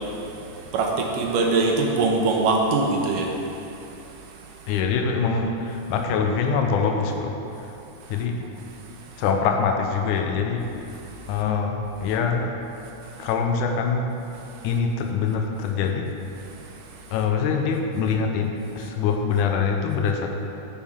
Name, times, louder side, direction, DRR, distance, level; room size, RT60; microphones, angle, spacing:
voice 1, 0.7-3.3, right 3 dB, 75° right, 1 dB, 2.1 m, -22 dB
voice 2, 4.7-7.8 8.1-8.4 9.2-10.9 11.3-12.6 13.2-14.2 14.6-16.1 17.1-20.3, left 5 dB, 85° left, 3 dB, 1.8 m, -24 dB
10.0 x 10.0 x 3.6 m, 2.9 s
omnidirectional pair, 4.4 m